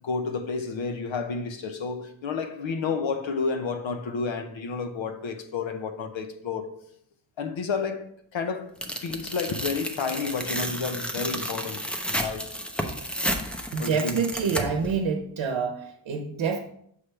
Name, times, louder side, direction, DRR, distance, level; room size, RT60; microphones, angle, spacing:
voice 1, 0.0-6.7 7.4-12.5 13.8-14.2, left 5 dB, 85° left, 0.8 m, -31 dB
Tearing, 8.8-14.9, equal, 5° left, 0.4 m, -32 dB
voice 2, 13.7-16.6, right 6 dB, 80° right, 0.8 m, -27 dB
6.6 x 3.3 x 5.5 m
wide cardioid pair, 180°, 45 cm